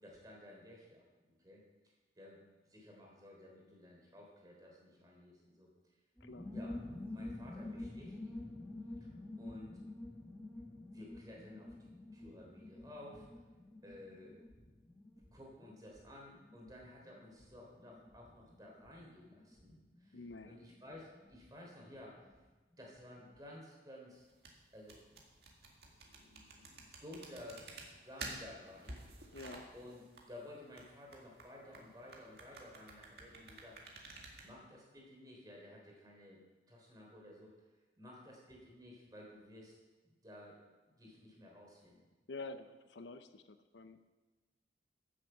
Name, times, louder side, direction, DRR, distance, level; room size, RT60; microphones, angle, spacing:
voice 1, 0.0-1.6 2.2-5.7 6.5-6.8 7.1-8.5 9.0-9.1 9.4-9.8 10.6-13.3 13.8-14.4 15.1-22.3 22.8-24.2 24.7-25.0 25.9-27.6 28.0-29.0 29.7-33.8 34.4-36.4 36.7-37.5 38.0-39.7 40.0-40.6 40.9-42.0, left 1 dB, 20° right, -2 dB, 3.3 m, -54 dB
sound 1, 6.2-22.5 22.7-22.8 23.0-23.4, left 2 dB, 10° left, 1.7 m, -50 dB
voice 2, 20.1-20.5 29.3-29.7 42.3-44.0, left 3 dB, 90° left, 10 dB, 0.8 m, -48 dB
sound 2, 24.2-34.5, right 3 dB, 65° right, 2.0 m, -51 dB
15.5 x 7.5 x 5.6 m, 1.2 s
head